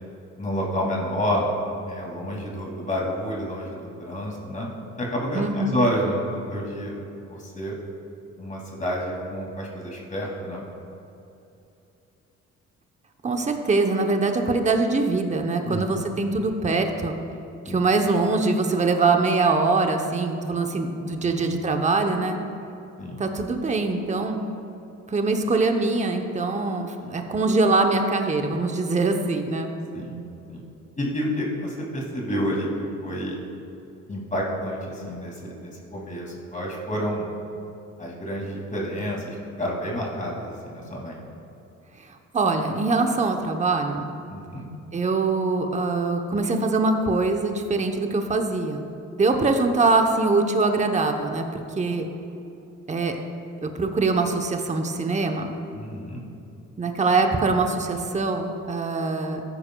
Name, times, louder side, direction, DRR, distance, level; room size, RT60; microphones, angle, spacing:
voice 1, 0.4-1.5 1.9-4.7 5.0-7.0 7.3-7.8 8.4-10.7 15.6-15.9 17.6-17.8 21.2-21.5 23.0-23.2 27.0-27.1 29.9-30.2 30.5-30.6 31.0-32.7 33.0-33.4 34.1-37.3 38.0-41.2 44.3-44.6 55.7-56.2, equal, 25° left, -2 dB, 2.3 m, -29 dB
voice 2, 5.3-5.7 13.2-17.2 17.7-22.4 23.2-24.5 25.1-29.7 42.3-44.1 44.9-48.9 49.1-52.1 52.9-53.2 53.6-55.5 56.8-59.4, right 3 dB, 25° right, 4 dB, 0.8 m, -23 dB
14.0 x 9.9 x 2.3 m, 2.9 s
cardioid pair, 90°, 30 cm